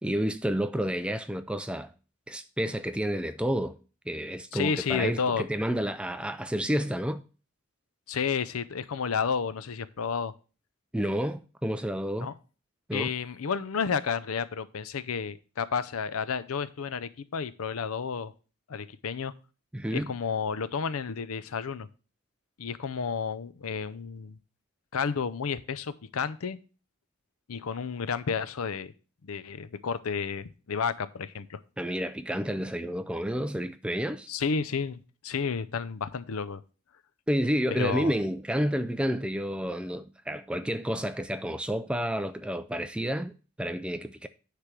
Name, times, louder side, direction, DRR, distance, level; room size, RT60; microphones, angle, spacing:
voice 1, 0.0-1.9 2.3-3.7 4.1-7.2 10.9-12.3 12.9-13.1 19.7-20.1 31.8-34.3 37.3-43.3 43.6-44.3, equal, 5° right, 0.3 m, -30 dB
voice 2, 4.5-5.4 8.1-10.3 12.2-12.3 12.9-18.3 18.7-19.3 19.9-21.9 22.6-24.4 24.9-26.6 27.5-28.9 29.2-31.6 34.3-35.0 35.2-36.6 37.7-38.1, left 6 dB, 80° left, 0.6 m, -31 dB
9.8 x 3.3 x 6.0 m
head